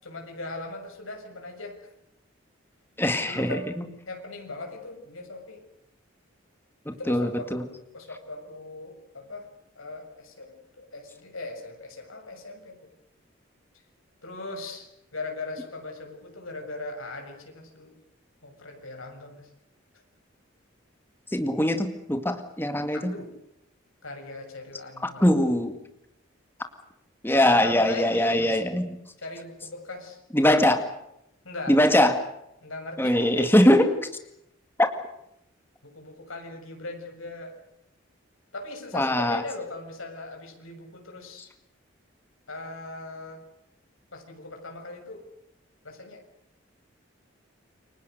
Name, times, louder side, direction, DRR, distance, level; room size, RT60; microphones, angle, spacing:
voice 1, 0.0-1.8 3.3-3.7 4.1-5.6 6.9-7.6 7.9-9.5 9.8-12.9 14.2-14.9 15.1-17.9 18.4-19.5 22.9-23.3 24.0-25.3 27.3-28.6 29.2-30.2 31.4-31.8 32.6-33.9 35.8-37.5 38.5-41.5 42.5-43.4 44.1-45.2 45.8-46.2, left 2 dB, 85° left, 2 dB, 6.8 m, -39 dB
voice 2, 3.0-3.6 6.9-7.6 21.3-23.1 25.2-25.8 27.2-28.9 30.3-30.8 31.7-32.2 33.0-33.8 38.9-39.4, left 1 dB, 10° left, 7 dB, 2.0 m, -21 dB
29.0 x 24.0 x 6.7 m, 0.79 s
head